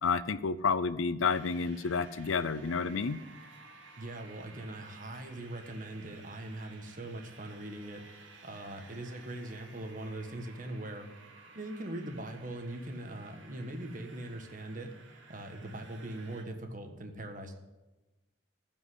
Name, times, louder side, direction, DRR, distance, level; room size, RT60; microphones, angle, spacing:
voice 1, 0.0-3.2, left 5 dB, 85° left, 15 dB, 0.6 m, -30 dB
sound 1, 1.3-16.4, right 4 dB, 75° right, 2.1 m, -55 dB
voice 2, 4.0-8.0 8.4-11.1 11.5-14.9 15.3-17.5, right 1 dB, 45° right, 5 dB, 1.5 m, -41 dB
15.0 x 5.4 x 8.1 m, 1.1 s
head